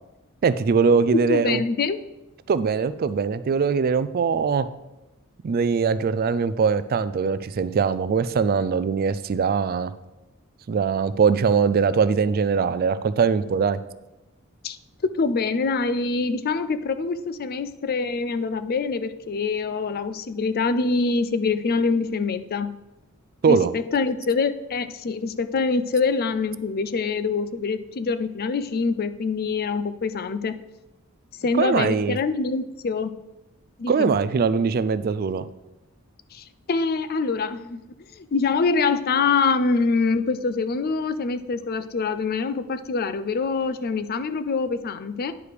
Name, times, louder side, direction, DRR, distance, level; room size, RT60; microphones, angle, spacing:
voice 1, 0.4-1.6 2.5-4.7 5.4-9.9 10.7-13.8 23.4-23.7 31.6-32.2 33.9-35.5, right 5 dB, 45° right, 14 dB, 0.4 m, -21 dB
voice 2, 1.3-2.0 14.6-14.8 15.0-22.7 23.5-30.5 31.4-33.1 33.8-34.1 36.3-37.8 38.1-45.3, left 4 dB, 45° left, 12 dB, 0.4 m, -25 dB
9.7 x 4.9 x 5.0 m, 0.97 s
head